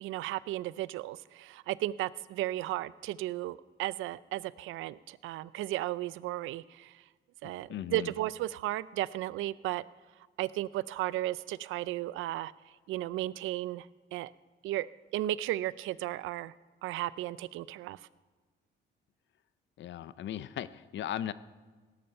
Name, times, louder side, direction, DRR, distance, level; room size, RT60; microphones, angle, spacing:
voice 1, 0.0-7.0 7.4-9.8 10.4-12.5 12.9-14.3 14.6-14.9 15.1-16.5 16.8-18.0, right 15 dB, 90° right, 19 dB, 0.5 m, -34 dB
voice 2, 7.7-8.1 19.8-21.3, left 11 dB, 65° left, 16 dB, 0.7 m, -37 dB
18.0 x 11.5 x 5.5 m, 1.4 s
cardioid pair, 90°, 20 cm